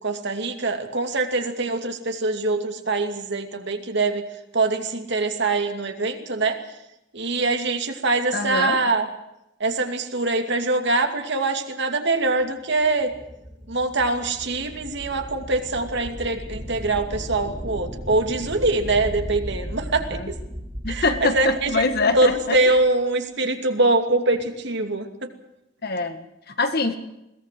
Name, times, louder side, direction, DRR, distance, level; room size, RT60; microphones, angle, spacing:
voice 1, 0.0-4.2 4.5-6.6 7.1-9.0 9.6-13.1 13.7-20.3 20.9-21.7 22.1-25.1, right 2 dB, 60° right, 5 dB, 2.6 m, -23 dB
voice 2, 8.3-8.8 20.1-20.3 20.8-22.8 25.8-27.0, left 3 dB, 50° left, 8 dB, 1.9 m, -24 dB
sound 1, 12.8-22.9, equal, 25° right, 6.5 m, -36 dB
21.5 x 18.0 x 7.7 m, 0.88 s
head